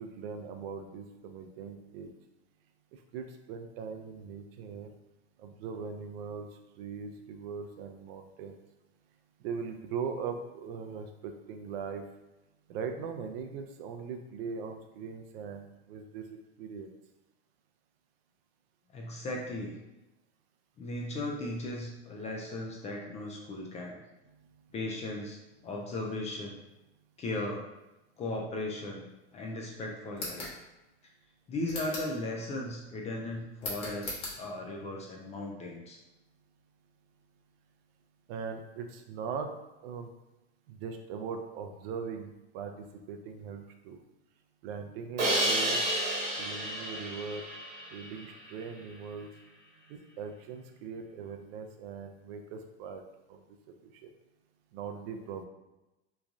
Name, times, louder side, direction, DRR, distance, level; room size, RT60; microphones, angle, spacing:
voice 1, 0.0-2.1 3.1-4.9 5.4-6.5 6.8-8.5 9.4-12.0 12.7-16.9 38.3-39.5 39.8-40.1 40.7-44.0 44.6-45.8 46.4-47.5 47.9-49.3 49.9-53.0 53.3-54.1 54.7-55.5, right 6 dB, 60° right, 5 dB, 0.5 m, -40 dB
voice 2, 18.9-19.8 20.8-24.0 24.7-25.4 25.6-26.6 27.2-27.6 28.2-30.5 31.5-36.0, left 2 dB, 20° left, -1 dB, 0.3 m, -37 dB
sound 1, 30.1-30.6 31.7-32.2 33.6-34.4, left 2 dB, 50° left, 1.2 m, -38 dB
Crash cymbal, 45.2-48.2, right 1 dB, 90° right, 1.1 m, -31 dB
3.1 x 2.3 x 2.5 m, 0.99 s
hypercardioid pair, 105°, 34 cm